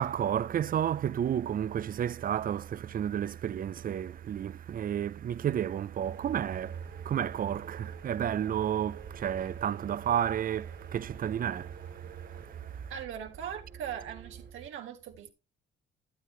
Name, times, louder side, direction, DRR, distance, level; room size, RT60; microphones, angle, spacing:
voice 1, 0.0-12.9, right 9 dB, 45° right, 0.5 m, -32 dB
sound 1, 6.0-14.5, right 7 dB, 65° right, 2.5 m, -46 dB
voice 2, 12.9-15.3, right 9 dB, 85° right, 1.6 m, -40 dB
11.5 x 8.2 x 3.2 m
cardioid pair, 90°, 20 cm